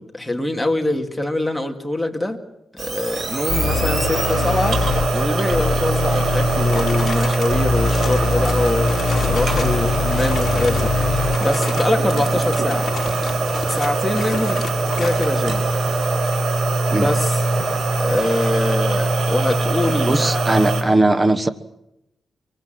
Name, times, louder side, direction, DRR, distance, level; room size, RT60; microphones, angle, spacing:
voice 1, 0.0-2.4 2.7-4.8 5.1-8.9 9.2-10.9 11.4-12.9 13.7-14.7 14.9-15.6 16.9-17.4 18.0-20.4, left 1 dB, 5° left, 3 dB, 2.2 m, -24 dB
sound 1, 2.8-20.8, right 2 dB, 50° right, 5.5 m, -21 dB
sound 2, 3.5-11.5, left 7 dB, 85° left, 1.0 m, -25 dB
sound 3, 6.3-9.8 10.1-10.9 11.2-15.3, left 4 dB, 45° left, 4.4 m, -33 dB
voice 2, 20.1-21.5, right 2 dB, 20° right, 11 dB, 1.2 m, -18 dB
24.0 x 23.5 x 7.7 m, 0.85 s
wide cardioid pair, 140°, 0 cm